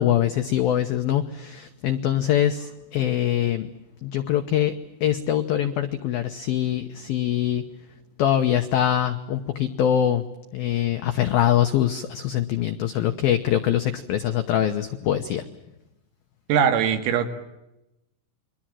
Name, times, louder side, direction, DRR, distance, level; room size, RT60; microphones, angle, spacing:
voice 1, 0.0-3.7 4.0-4.8 5.0-7.6 8.2-10.3 10.5-15.4, left 11 dB, 85° left, 7 dB, 2.1 m, -23 dB
voice 2, 16.5-17.3, right 8 dB, 85° right, 7 dB, 4.8 m, -20 dB
29.5 x 23.0 x 7.6 m, 0.93 s
omnidirectional pair, 5.9 m